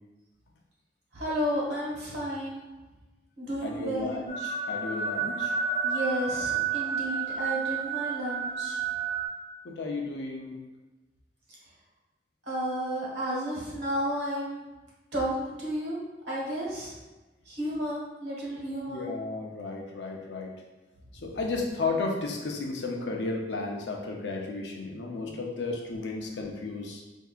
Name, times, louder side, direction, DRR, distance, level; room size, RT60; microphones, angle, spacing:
voice 1, 1.1-2.7 3.4-4.2 5.8-8.8 12.4-14.7 15.1-16.0 16.3-16.9 17.5-19.1, equal, 75° right, -6 dB, 1.4 m, -32 dB
voice 2, 3.6-5.5 9.6-10.6 18.9-20.5 21.2-27.0, left 3 dB, 75° left, 0 dB, 0.6 m, -33 dB
sound 1, 4.3-9.3, right 5 dB, 35° left, 1.1 m, -30 dB
4.5 x 2.6 x 2.4 m, 1.1 s
head